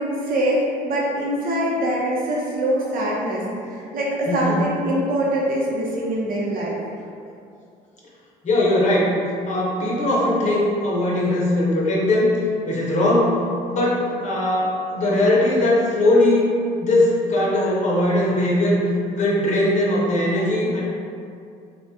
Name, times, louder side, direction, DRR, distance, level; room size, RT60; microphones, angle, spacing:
voice 1, 0.0-3.4 3.7-6.8, right 1 dB, 55° right, -4 dB, 0.8 m, -23 dB
voice 2, 4.3-4.6 8.4-9.2 9.5-12.4 12.6-13.3 13.7-16.4 16.8-18.8 19.1-20.8, left 1 dB, 45° left, -5 dB, 0.8 m, -20 dB
3.4 x 2.3 x 2.7 m, 2.4 s
cardioid pair, 110°, 17 cm